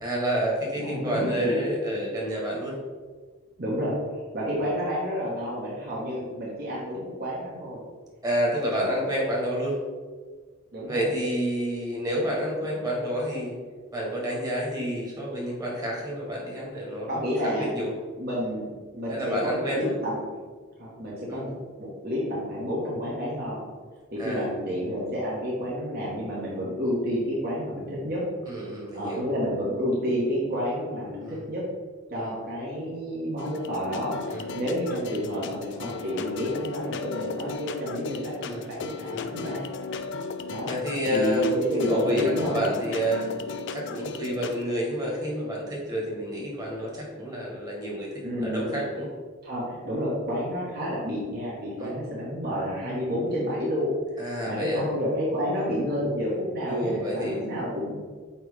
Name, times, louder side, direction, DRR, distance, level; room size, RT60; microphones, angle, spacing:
voice 1, 0.0-2.8 8.2-9.8 10.8-13.5 13.9-17.9 19.1-20.0 21.3-21.4 24.2-24.5 28.5-29.2 31.2-31.4 32.1-32.4 34.3-34.5 38.4-38.7 39.1-39.5 40.6-41.5 41.9-43.3 43.7-49.1 51.8-51.9 54.2-54.9 56.6-57.5, equal, 20° right, -3 dB, 1.5 m, -29 dB
voice 2, 0.8-1.6 3.6-7.8 8.7-8.8 10.7-11.0 17.1-17.7 18.2-18.7 18.9-20.2 20.8-21.5 21.8-23.6 24.1-28.3 28.9-31.7 32.1-39.6 40.5-40.7 41.1-42.6 48.2-48.7 49.4-53.9 54.4-58.0, equal, 45° right, -7 dB, 1.4 m, -30 dB
sound 1, 33.4-44.6, left 4 dB, 55° left, 0.4 m, -36 dB
8.7 x 3.1 x 3.6 m, 1.5 s
head